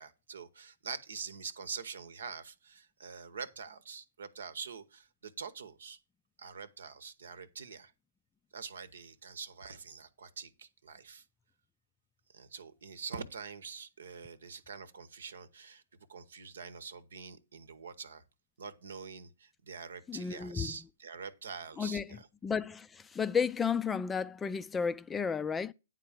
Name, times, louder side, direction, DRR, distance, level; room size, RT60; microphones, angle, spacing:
voice 1, 0.0-6.0 6.4-7.9 8.5-11.2 12.3-15.8 16.1-18.2 18.6-22.3, right 5 dB, 75° right, 0.9 m, -45 dB
voice 2, 20.1-20.7 21.8-25.7, left 6 dB, 15° left, 0.3 m, -33 dB
9.5 x 3.8 x 7.2 m
hypercardioid pair, 130°, 0 cm